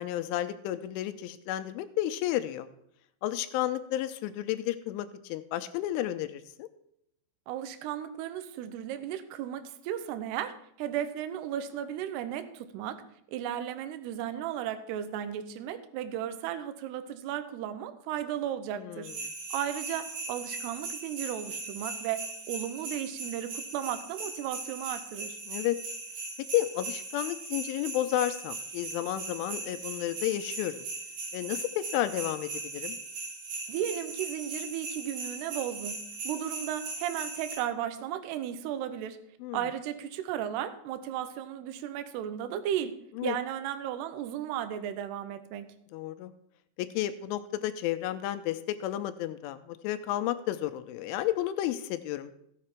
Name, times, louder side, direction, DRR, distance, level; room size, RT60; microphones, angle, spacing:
voice 1, 0.0-2.7 3.2-6.7 18.7-19.1 25.5-25.8 26.5-30.8 31.3-33.0 39.4-39.6 43.2-43.4 45.9-46.3 46.8-52.3, left 13 dB, 85° left, 10 dB, 3.0 m, -32 dB
voice 2, 7.5-13.0 13.3-19.1 19.5-25.4 33.7-36.0 36.2-39.2 39.5-42.9 43.2-45.7, right 10 dB, 80° right, 10 dB, 2.4 m, -35 dB
sound 1, 19.0-37.6, right 3 dB, 60° right, 6.6 m, -39 dB
15.0 x 7.6 x 4.5 m, 0.73 s
omnidirectional pair, 5.7 m